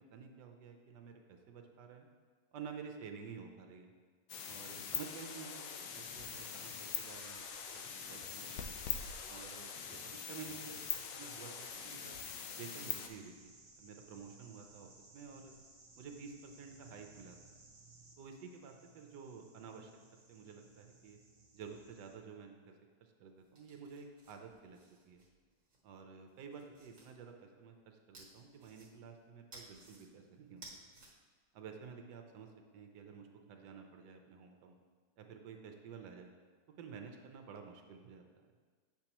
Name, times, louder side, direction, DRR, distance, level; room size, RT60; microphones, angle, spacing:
voice 1, 0.1-2.1 2.5-3.9 4.4-7.4 7.7-8.7 9.3-12.2 12.6-15.5 16.0-17.5 18.2-21.2 21.5-22.7 23.0-24.8 25.0-25.2 25.8-30.9 31.5-32.5 32.7-34.8 35.2-36.3 36.8-38.2, right 6 dB, 70° right, 4 dB, 1.2 m, -51 dB
sound 1, 4.3-13.1, left 8 dB, 80° left, 1.3 m, -43 dB
sound 2, 5.7-22.1, right 3 dB, 30° right, 0.6 m, -61 dB
sound 3, 23.4-25.8 26.3-27.1 28.1-29.2 29.5-30.0 30.5-31.1, right 2 dB, 50° right, 1.6 m, -57 dB
8.3 x 5.9 x 2.9 m, 1.5 s
omnidirectional pair, 2.0 m